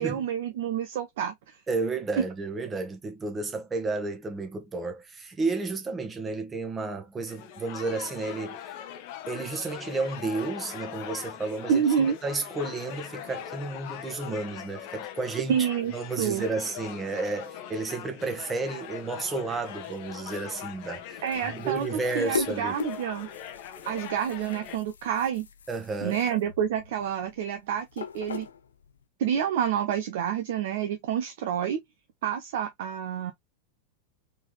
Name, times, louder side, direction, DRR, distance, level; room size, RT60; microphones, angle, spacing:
voice 1, 0.0-1.6 2.2-2.3 11.7-12.2 15.5-15.9 16.2-16.4 21.2-23.3 23.9-25.5 26.0-28.5 29.2-31.8 32.2-33.3, right 8 dB, 55° right, 0.8 m, -28 dB
voice 2, 1.7-8.7 9.3-11.8 12.2-15.6 15.9-22.7 25.7-26.2, right 3 dB, 15° right, 1.4 m, -32 dB
sound 1, 7.3-24.8, left 10 dB, 45° left, 0.8 m, -41 dB
sound 2, 19.5-29.0, left 5 dB, 70° left, 0.6 m, -41 dB
4.4 x 3.7 x 3.1 m
figure-of-eight pair, 90°, 0 cm